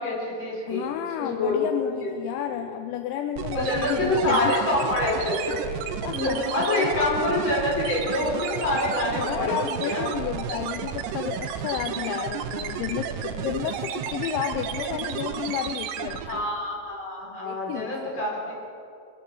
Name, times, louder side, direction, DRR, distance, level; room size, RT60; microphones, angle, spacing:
voice 1, 0.0-0.8 1.2-1.7 2.0-2.1 2.5-2.6 3.5-5.6 6.1-10.1 16.3-18.5, left 2 dB, 25° left, -6 dB, 5.2 m, -26 dB
voice 2, 0.7-4.6 5.7-7.0 9.2-16.4 17.5-18.3, left 11 dB, 80° left, 7 dB, 2.7 m, -32 dB
sound 1, 3.4-16.5, right 8 dB, 80° right, 2.6 m, -32 dB
23.5 x 9.3 x 6.5 m, 2.5 s
omnidirectional pair, 5.7 m